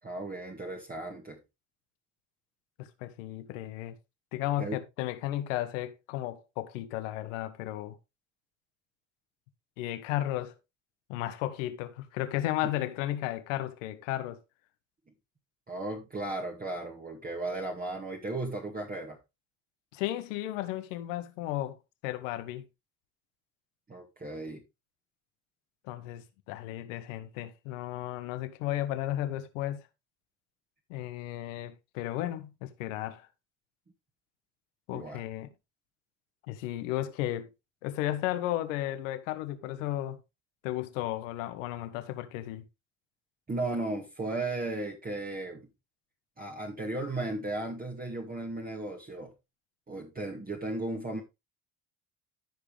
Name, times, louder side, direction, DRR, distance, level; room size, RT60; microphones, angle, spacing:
voice 1, 0.0-1.4 4.6-4.8 15.7-19.2 23.9-24.6 34.9-35.2 43.5-45.7 46.4-49.3 49.9-51.2, right 2 dB, 25° right, 2.1 m, -35 dB
voice 2, 2.8-3.9 4.3-8.0 9.8-10.5 11.1-14.4 19.9-22.7 25.8-29.8 30.9-33.3 34.9-35.5 36.5-37.5 37.8-40.2 40.6-42.6, left 14 dB, 85° left, 1.4 m, -34 dB
14.0 x 5.0 x 3.4 m
supercardioid pair, 75°, 37 cm